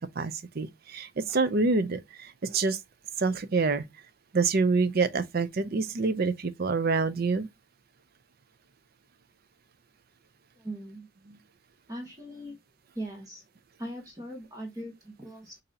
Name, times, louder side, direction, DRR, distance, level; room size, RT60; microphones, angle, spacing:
voice 1, 0.1-2.8 3.2-3.9 4.3-7.5 11.3-11.4, right 4 dB, 45° right, 0.5 m, -27 dB
voice 2, 10.5-11.1 11.9-12.6 12.9-13.4 13.8-15.6, right 1 dB, 15° right, 1.2 m, -40 dB
6.8 x 2.7 x 2.7 m
head